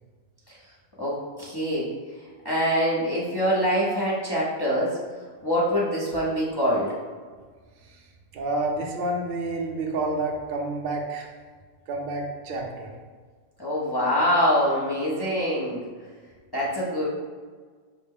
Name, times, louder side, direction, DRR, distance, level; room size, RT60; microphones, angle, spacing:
voice 1, 1.0-1.9 2.4-5.0 5.4-6.9 13.6-15.8 16.5-17.0, equal, 30° left, -7 dB, 0.5 m, -24 dB
voice 2, 8.3-11.3 11.9-13.0, right 2 dB, 55° right, 0 dB, 0.6 m, -29 dB
4.9 x 2.1 x 3.5 m, 1.5 s
omnidirectional pair, 1.4 m